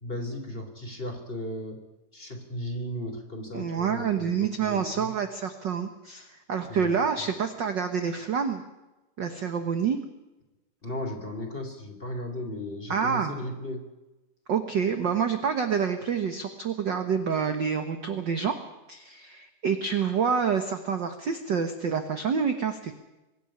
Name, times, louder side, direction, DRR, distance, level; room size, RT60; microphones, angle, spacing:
voice 1, 0.0-1.8 2.1-5.1 6.7-6.9 10.8-13.9, left 1 dB, 15° left, 4 dB, 3.2 m, -36 dB
voice 2, 3.5-8.6 9.2-10.0 12.9-13.3 14.5-18.6 18.9-22.9, right 6 dB, 60° right, 8 dB, 1.1 m, -27 dB
24.0 x 11.0 x 10.0 m, 1.0 s
omnidirectional pair, 3.8 m